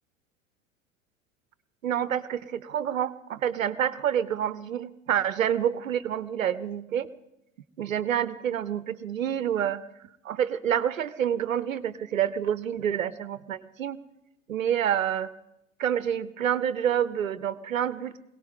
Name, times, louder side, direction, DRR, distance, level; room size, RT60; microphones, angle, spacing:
voice 1, 1.8-7.1 7.8-9.8 10.2-14.0 14.5-15.3 15.8-18.2, right 9 dB, 80° right, 16 dB, 0.7 m, -28 dB
22.0 x 17.5 x 3.7 m, 0.83 s
figure-of-eight pair, 80°, 40 cm